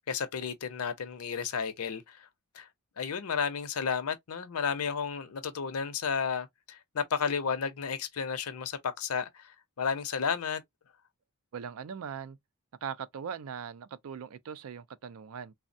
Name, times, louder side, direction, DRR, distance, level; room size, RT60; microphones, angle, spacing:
voice 1, 0.1-2.2 2.5-2.7 3.0-10.6, left 6 dB, 80° left, 0.6 m, -32 dB
voice 2, 11.5-12.4 12.8-15.5, right 7 dB, 70° right, 0.4 m, -40 dB
3.4 x 2.1 x 2.5 m
head